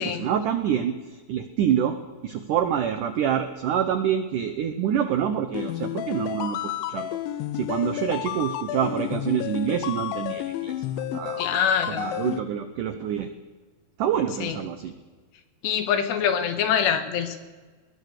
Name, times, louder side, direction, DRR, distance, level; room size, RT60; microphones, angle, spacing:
voice 1, 0.0-2.0 2.2-7.2 7.5-13.3 14.0-14.9, right 9 dB, 80° right, 8 dB, 1.8 m, -27 dB
sound 1, 5.5-12.4, left 13 dB, 90° left, 3.2 m, -31 dB
voice 2, 11.4-12.1 14.3-14.6 15.6-17.4, left 8 dB, 75° left, 7 dB, 3.5 m, -25 dB
21.0 x 20.5 x 6.7 m, 1.3 s
omnidirectional pair, 5.2 m